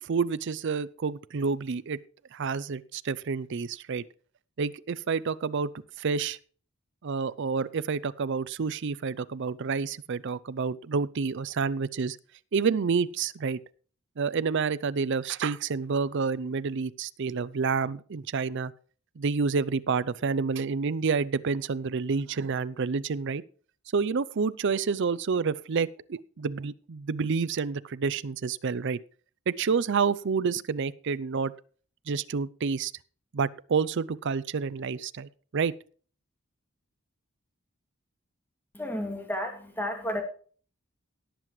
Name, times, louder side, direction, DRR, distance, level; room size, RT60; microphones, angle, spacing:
voice 1, 0.0-2.0 2.3-4.0 4.6-5.7 6.0-6.4 7.0-12.2 12.5-13.6 14.2-18.7 19.2-23.4 23.9-29.0 29.5-31.5 32.1-32.9 33.3-35.7, right 5 dB, 60° right, 18 dB, 0.5 m, -29 dB
voice 2, 38.7-40.2, left 1 dB, 10° left, 3 dB, 2.3 m, -32 dB
18.0 x 7.6 x 3.1 m, 0.43 s
head